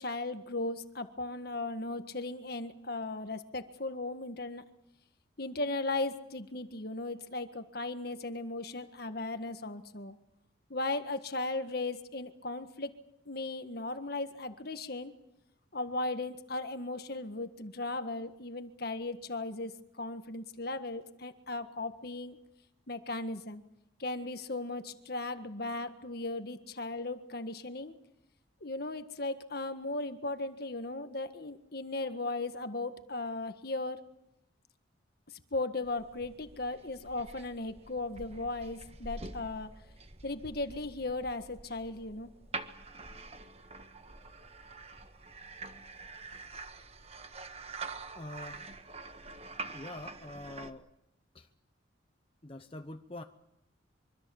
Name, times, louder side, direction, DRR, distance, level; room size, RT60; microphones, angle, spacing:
voice 1, 0.0-4.6 5.4-10.2 10.7-12.9 13.2-15.1 15.7-22.4 22.9-23.6 24.0-27.9 28.6-34.0 35.3-39.7 40.2-42.3, left 2 dB, 50° left, 9 dB, 1.7 m, -37 dB
sound 1, 35.8-50.7, right 3 dB, 30° right, 1.5 m, -46 dB
voice 2, 48.1-48.6 49.7-50.9 51.3-51.5 52.4-53.2, left 1 dB, 30° left, 6 dB, 1.0 m, -44 dB
25.0 x 25.0 x 7.2 m, 0.85 s
head